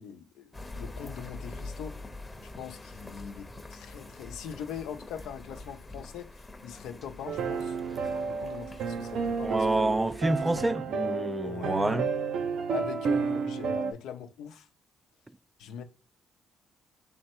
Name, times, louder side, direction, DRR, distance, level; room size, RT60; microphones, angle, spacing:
voice 1, 0.0-2.0 2.4-6.3 6.6-7.8 8.3-10.0 10.6-10.7 11.4-11.8 12.7-14.7 15.6-15.8, left 8 dB, 90° left, 0.6 m, -42 dB
sound 1, 0.5-10.7, left 2 dB, 15° left, 0.8 m, -45 dB
sound 2, 7.3-13.9, right 5 dB, 75° right, 0.6 m, -31 dB
voice 2, 9.4-12.1, right 2 dB, 15° right, 0.3 m, -28 dB
3.5 x 3.3 x 4.4 m
cardioid pair, 90°, 0 cm